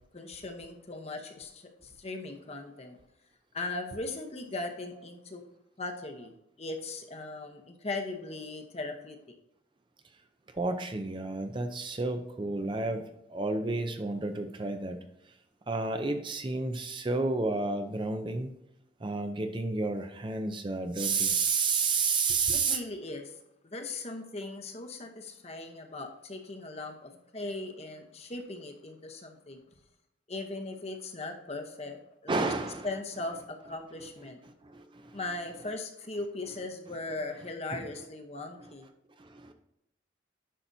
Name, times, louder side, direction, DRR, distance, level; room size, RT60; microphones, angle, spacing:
voice 1, 0.0-3.0 3.5-5.4 5.8-9.2 22.5-23.3 23.6-29.6 30.3-32.5 32.8-34.4 35.1-38.9, left 2 dB, 35° left, 5 dB, 0.9 m, -39 dB
voice 2, 10.5-13.0 13.3-15.0 15.7-18.5 19.0-22.8 32.3-35.6 36.2-36.5 36.9-37.0 37.7-37.9 38.6-38.7 39.2-39.5, right 4 dB, 25° right, 7 dB, 0.5 m, -31 dB
10.0 x 5.7 x 2.7 m, 0.83 s
head